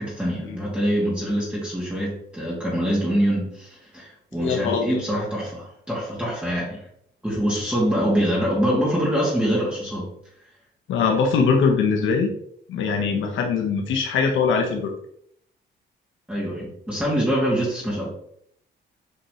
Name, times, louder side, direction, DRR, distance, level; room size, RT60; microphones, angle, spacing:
voice 1, 0.0-6.8 7.2-10.1 16.3-18.1, equal, 5° right, -6 dB, 2.5 m, -24 dB
voice 2, 4.4-5.0 10.9-12.3 12.7-14.9, left 5 dB, 75° left, 2 dB, 1.3 m, -22 dB
7.5 x 4.7 x 3.2 m, 0.69 s
cardioid pair, 90°, 20 cm